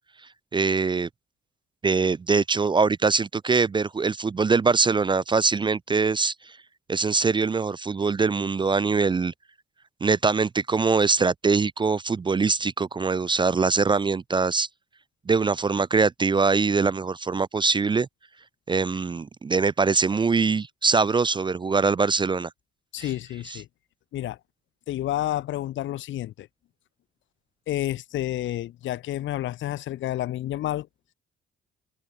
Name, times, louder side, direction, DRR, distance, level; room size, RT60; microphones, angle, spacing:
voice 1, 0.5-1.1 1.8-6.3 6.9-9.3 10.0-14.7 15.3-18.1 18.7-22.5 23.0-23.1, right 4 dB, 25° right, 0.4 m, -23 dB
voice 2, 22.9-23.7 24.1-24.4 24.9-26.5 27.7-30.9, left 13 dB, 70° left, 0.9 m, -30 dB
cardioid pair, 90°, 20 cm